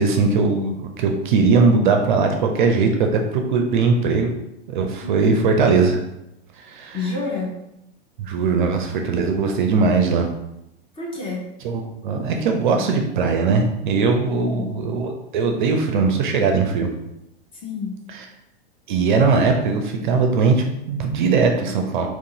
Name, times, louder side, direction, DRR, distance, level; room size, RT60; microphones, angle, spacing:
voice 1, 0.0-4.3 4.7-6.0 6.6-7.0 8.2-10.3 11.6-16.9 18.1-18.2 18.9-22.1, right 4 dB, 50° right, 4 dB, 0.5 m, -20 dB
voice 2, 5.0-5.4 6.9-7.5 11.0-11.5 14.3-14.8 17.5-17.9, left 3 dB, 15° left, -3 dB, 0.8 m, -28 dB
3.7 x 2.4 x 2.7 m, 0.86 s
figure-of-eight pair, 95°, 31 cm